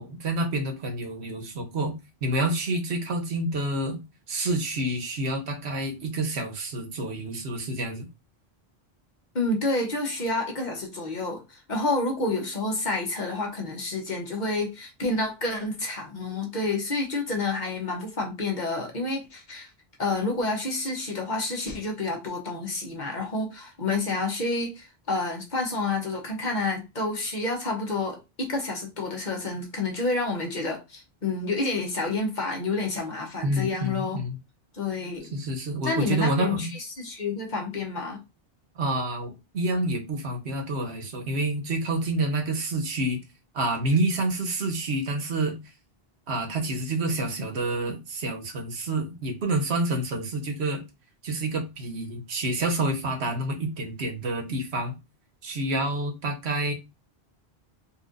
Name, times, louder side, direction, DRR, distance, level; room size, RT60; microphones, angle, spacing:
voice 1, 0.0-1.9 2.2-4.0 4.3-8.1 33.4-34.4 35.3-36.6 38.8-43.2 43.5-45.6 46.3-50.8 51.2-54.9 55.4-56.7, right 2 dB, 90° right, 1.2 m, -28 dB
voice 2, 9.3-19.7 20.0-34.2 34.7-35.3 35.8-36.7 37.0-38.2, left 3 dB, 45° left, 1.1 m, -29 dB
4.2 x 2.6 x 2.5 m
omnidirectional pair, 1.1 m